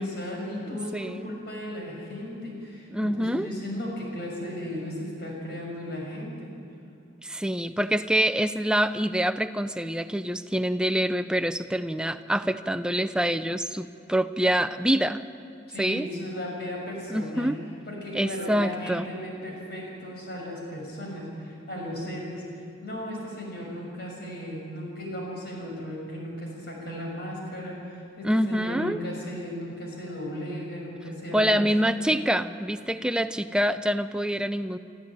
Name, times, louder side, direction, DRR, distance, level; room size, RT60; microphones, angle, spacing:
voice 1, 0.0-6.5 15.7-17.5 17.9-31.9, equal, 55° left, -1 dB, 6.4 m, -36 dB
voice 2, 0.7-1.3 2.9-3.5 7.2-15.2 15.8-16.1 17.1-17.6 18.1-19.1 28.2-29.0 31.3-34.8, equal, 5° right, 10 dB, 0.5 m, -26 dB
24.5 x 13.5 x 9.1 m, 2.4 s
head